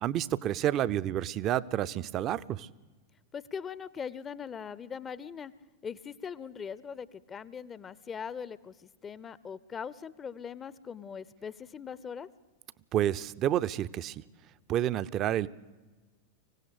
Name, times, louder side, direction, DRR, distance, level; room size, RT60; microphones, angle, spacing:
voice 1, 0.0-2.7 12.9-14.2 14.7-15.5, right 11 dB, 35° right, 15 dB, 0.6 m, -29 dB
voice 2, 3.3-5.5 5.8-12.3, left 7 dB, 20° left, 19 dB, 0.7 m, -41 dB
25.0 x 16.5 x 8.4 m, 1.3 s
figure-of-eight pair, 90°, 0 cm